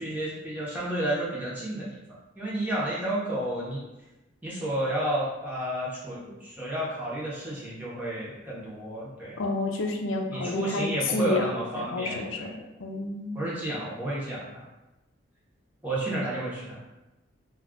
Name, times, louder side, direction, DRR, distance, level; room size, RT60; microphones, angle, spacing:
voice 1, 0.0-1.9 2.4-3.9 4.4-9.4 10.3-12.5 13.3-14.6 15.8-16.8, right 1 dB, 10° right, -8 dB, 0.7 m, -31 dB
voice 2, 9.4-12.5 12.8-13.5, left 3 dB, 85° left, 3 dB, 0.4 m, -30 dB
2.3 x 2.3 x 3.6 m, 1.0 s
head